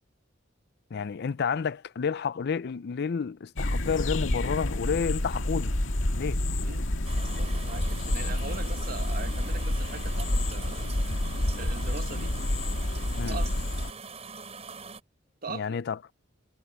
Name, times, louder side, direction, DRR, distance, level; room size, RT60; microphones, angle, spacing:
voice 1, 0.9-5.8 6.1-6.4 13.1-13.4 15.5-16.0, left 6 dB, 60° left, 0.4 m, -30 dB
sound 1, 3.6-13.9, left 1 dB, 85° left, 1.9 m, -29 dB
sound 2, 7.0-15.0, right 5 dB, 35° right, 5.2 m, -43 dB
voice 2, 7.4-10.9 11.5-12.3 13.1-13.7 15.4-15.8, right 4 dB, 50° right, 1.3 m, -41 dB
head